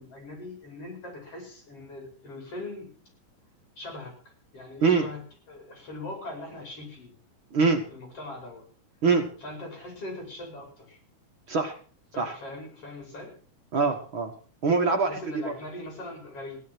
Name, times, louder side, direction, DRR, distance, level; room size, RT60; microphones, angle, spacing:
voice 1, 0.0-2.9 3.8-4.1 4.5-5.2 5.5-7.1 7.9-8.6 9.4-11.0 12.1-13.3 15.0-16.6, left 2 dB, 45° left, 2 dB, 6.2 m, -40 dB
voice 2, 13.7-14.3 14.6-15.2 15.4-15.5, right 4 dB, 50° right, 3 dB, 1.8 m, -23 dB
16.5 x 10.5 x 6.1 m, 0.42 s
omnidirectional pair, 3.9 m